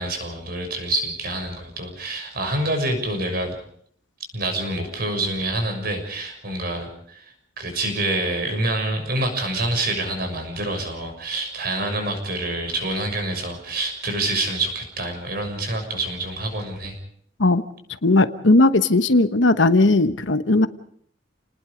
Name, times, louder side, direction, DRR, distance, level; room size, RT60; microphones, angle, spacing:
voice 1, 0.0-3.5 4.3-17.0, right 2 dB, 55° right, 5 dB, 6.6 m, -27 dB
voice 2, 18.0-20.7, left 2 dB, 80° left, 11 dB, 1.2 m, -17 dB
30.0 x 20.0 x 5.1 m, 0.63 s
head